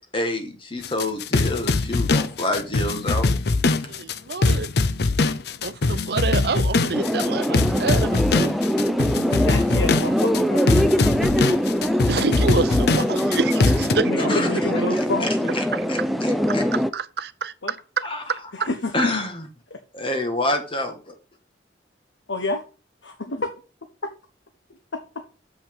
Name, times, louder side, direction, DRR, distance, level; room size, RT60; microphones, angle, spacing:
voice 1, 0.1-3.3 14.3-14.5 15.2-15.3 15.5-15.6 15.9-16.6 18.0-18.2 18.9-19.5 19.9-21.1, left 2 dB, 30° left, 1.7 m, -27 dB
sound 1, 0.8-13.9, left 3 dB, 60° left, 0.5 m, -22 dB
voice 2, 3.9-4.7 5.6-8.6 11.8-14.9 15.7-15.8 16.2-18.7, right 4 dB, 60° right, 0.6 m, -28 dB
sound 2, 6.9-16.9, equal, ahead, 0.5 m, -23 dB
voice 3, 9.4-10.6 14.0-15.6 17.6-17.7 18.6-19.1 19.7-19.8 22.3-22.6 23.0-23.5 24.9-25.3, left 2 dB, 85° left, 1.1 m, -29 dB
7.2 x 5.6 x 5.4 m
head